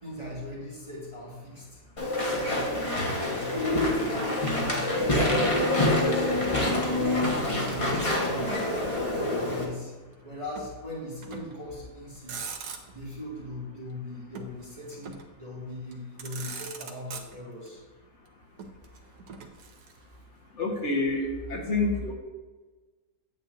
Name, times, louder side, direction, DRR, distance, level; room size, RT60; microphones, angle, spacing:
voice 1, 0.0-1.8 2.4-6.5 6.8-8.5 9.3-9.9 10.2-12.5 12.9-17.8, left 1 dB, 20° right, -6 dB, 1.8 m, -39 dB
Walk footsteps / Chatter / Squeak, 2.0-9.6, left 1 dB, 25° left, 1.2 m, -26 dB
Motor vehicle (road), 6.7-8.2 8.5-9.6 10.6-10.8 11.2-11.7 12.1-13.2 14.3-15.4 15.9-16.0 16.2-17.7 18.6-20.2, right 5 dB, 90° right, 1.3 m, -42 dB
voice 2, 20.6-22.1, left 2 dB, 50° left, 0 dB, 1.6 m, -28 dB
8.9 x 8.5 x 2.6 m, 1.3 s
omnidirectional pair, 1.7 m